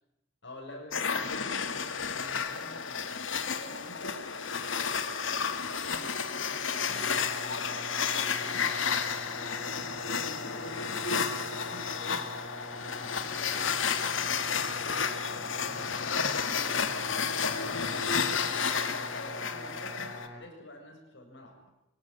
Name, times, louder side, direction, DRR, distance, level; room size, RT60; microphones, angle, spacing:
voice 1, 0.4-3.1 3.4-7.1 7.4-8.7 9.9-12.5 12.8-13.8 14.3-16.9 17.4-21.6, left 1 dB, 65° left, 2 dB, 7.7 m, -48 dB
sound 1, 0.9-20.3, left 6 dB, 80° left, 2.1 m, -31 dB
sound 2, 6.8-20.4, left 1 dB, 15° right, 6.2 m, -46 dB
25.0 x 18.0 x 9.7 m, 0.88 s
head